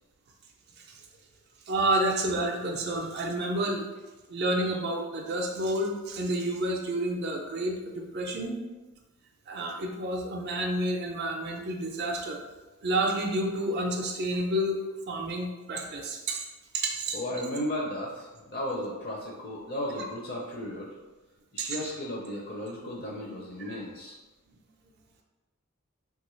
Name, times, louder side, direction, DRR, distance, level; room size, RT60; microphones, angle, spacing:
voice 1, 1.7-3.9 4.3-8.6 9.5-12.4 12.8-14.8 15.1-16.4 16.7-17.2 21.6-21.8 23.7-23.8, right 1 dB, 50° right, 1 dB, 0.4 m, -29 dB
voice 2, 17.1-20.9 21.5-24.2, left 1 dB, 45° left, -3 dB, 0.5 m, -35 dB
3.2 x 2.3 x 3.0 m, 1.1 s
head